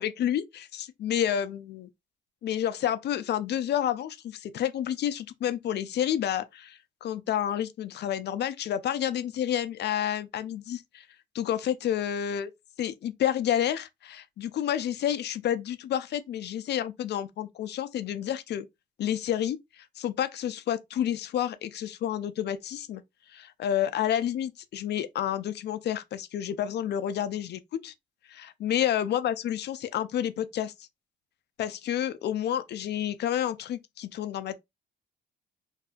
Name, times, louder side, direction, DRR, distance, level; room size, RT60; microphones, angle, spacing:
voice 1, 0.0-1.9 2.4-11.1 11.3-12.5 12.8-18.7 19.0-23.0 23.3-27.9 28.3-30.7 31.6-34.6, left 10 dB, 60° left, 0.4 m, -30 dB
2.6 x 2.4 x 2.2 m
cardioid pair, 90°, 20 cm